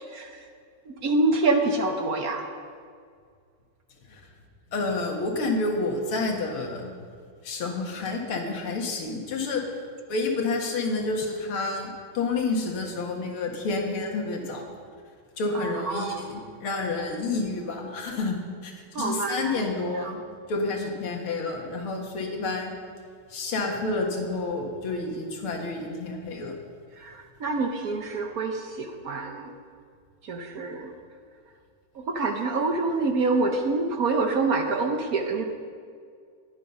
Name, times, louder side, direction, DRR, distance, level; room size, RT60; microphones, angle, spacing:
voice 1, 0.9-2.4 15.5-16.3 18.9-19.7 19.9-20.1 27.0-29.5 30.2-30.9 32.1-35.4, right 3 dB, 55° right, 4 dB, 1.1 m, -26 dB
voice 2, 4.7-6.9 7.4-9.6 10.1-14.6 15.4-18.4 18.6-20.2 20.5-22.8 23.3-26.6, left 3 dB, 85° left, 1 dB, 2.6 m, -29 dB
20.0 x 7.5 x 5.5 m, 2.1 s
omnidirectional pair, 2.3 m